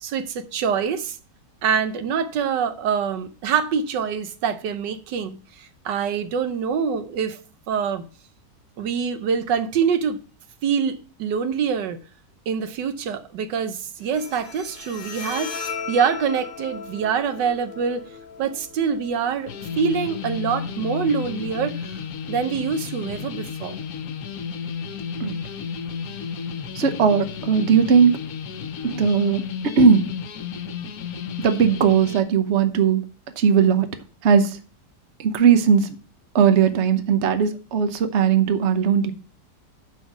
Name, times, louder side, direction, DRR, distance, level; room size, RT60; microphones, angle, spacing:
voice 1, 0.0-1.2 1.6-8.0 8.8-10.2 10.6-12.0 12.5-18.1 18.4-21.8 22.3-23.8, right 6 dB, 85° right, 1.5 m, -25 dB
Bowed string instrument, 14.0-21.0, left 5 dB, 40° left, 1.0 m, -37 dB
sound 1, 19.5-32.2, left 6 dB, 65° left, 1.2 m, -32 dB
voice 2, 26.7-28.2 28.8-30.1 31.4-33.0 33.4-33.9 34.2-34.6 35.2-35.9 36.3-39.1, right 6 dB, 50° right, 1.0 m, -18 dB
6.4 x 5.4 x 7.1 m
omnidirectional pair, 1.8 m